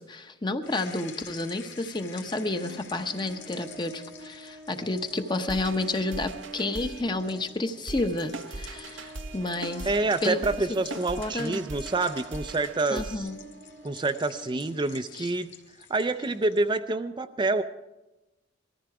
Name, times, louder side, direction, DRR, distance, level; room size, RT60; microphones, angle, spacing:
voice 1, 0.0-9.9 10.2-10.4 10.7-10.8 11.2-11.6 12.9-13.4 15.2-15.3, left 2 dB, 25° left, 7 dB, 0.9 m, -30 dB
sound 1, 0.6-16.7, left 7 dB, 70° left, 2.0 m, -50 dB
sound 2, 2.3-15.3, right 2 dB, 60° right, 1.0 m, -47 dB
sound 3, 5.5-7.0 7.9-13.2, right 3 dB, 85° right, 0.9 m, -40 dB
voice 2, 9.8-13.3 13.8-15.5 15.9-17.6, right 2 dB, 25° right, 8 dB, 0.5 m, -27 dB
20.0 x 14.0 x 4.8 m, 1.0 s
head